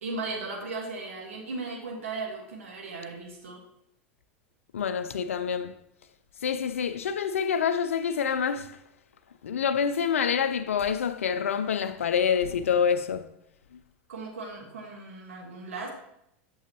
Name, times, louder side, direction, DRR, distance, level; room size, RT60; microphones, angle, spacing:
voice 1, 0.0-3.6 14.1-15.9, right 3 dB, 85° right, 1.5 m, -37 dB
voice 2, 4.7-5.7 6.4-8.8 9.4-13.3, left 7 dB, 85° left, 0.4 m, -27 dB
8.3 x 6.3 x 2.9 m
hypercardioid pair, 95°, 7 cm